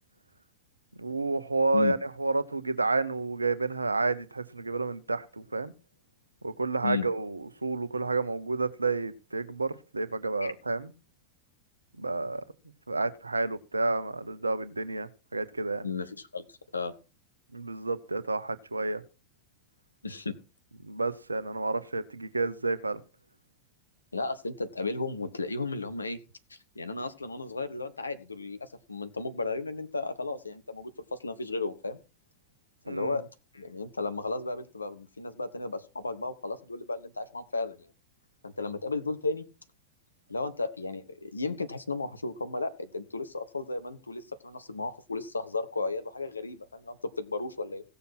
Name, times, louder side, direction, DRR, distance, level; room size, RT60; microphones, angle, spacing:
voice 1, 1.0-5.7 6.4-10.9 12.0-12.5 12.9-15.8 17.5-19.0 20.8-23.0 32.9-33.2, right 3 dB, 80° right, 0.9 m, -30 dB
voice 2, 15.8-16.9 20.0-20.3 24.1-26.2 26.5-32.0 32.9-33.2 33.5-37.9 38.4-39.4 40.3-47.8, left 3 dB, 80° left, 1.4 m, -34 dB
16.5 x 7.0 x 5.9 m
figure-of-eight pair, 90°, 0 cm